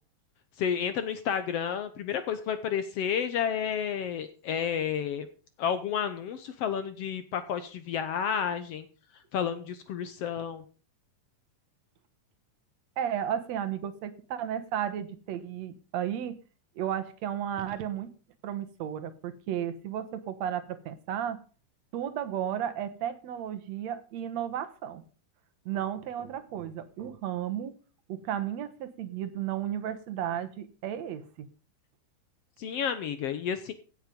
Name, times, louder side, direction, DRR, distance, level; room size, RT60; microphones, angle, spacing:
voice 1, 0.6-5.3 5.6-8.9 9.3-10.6 32.6-33.7, left 8 dB, 70° left, 11 dB, 1.5 m, -31 dB
voice 2, 13.0-16.4 16.8-18.1 18.4-21.4 21.9-25.0 25.7-27.7 28.1-31.5, right 10 dB, 65° right, 10 dB, 2.1 m, -33 dB
16.0 x 7.7 x 5.2 m, 0.37 s
omnidirectional pair, 3.7 m